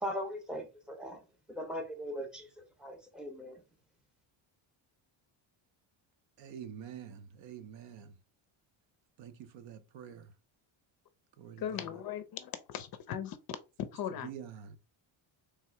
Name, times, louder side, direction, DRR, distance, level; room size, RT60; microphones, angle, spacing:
voice 1, 0.0-1.2 1.5-2.5 2.8-3.6, equal, ahead, 0.7 m, -39 dB
voice 2, 6.4-8.1 9.2-10.3 11.4-12.0 14.1-14.8, right 8 dB, 65° right, 0.7 m, -47 dB
voice 3, 11.6-13.4 13.9-14.3, left 9 dB, 50° left, 0.5 m, -38 dB
3.4 x 2.8 x 4.3 m
cardioid pair, 180°, 49 cm